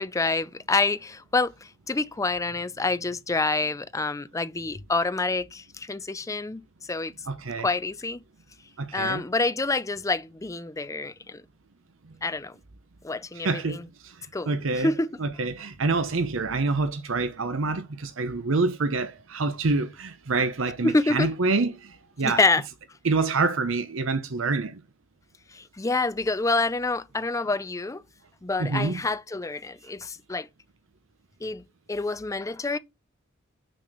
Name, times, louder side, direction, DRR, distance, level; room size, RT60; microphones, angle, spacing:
voice 1, 0.0-7.1 7.6-8.2 8.9-11.4 12.2-12.6 13.0-13.8 14.3-15.2 20.8-21.3 22.2-22.6 25.5-28.0 28.4-30.5 31.4-32.8, left 3 dB, 15° left, 0.4 m, -27 dB
voice 2, 7.3-7.7 8.8-9.2 13.4-14.1 14.5-14.9 15.2-22.4 23.0-24.8 28.6-29.0, right 3 dB, 65° right, 0.8 m, -26 dB
6.2 x 4.1 x 6.4 m
head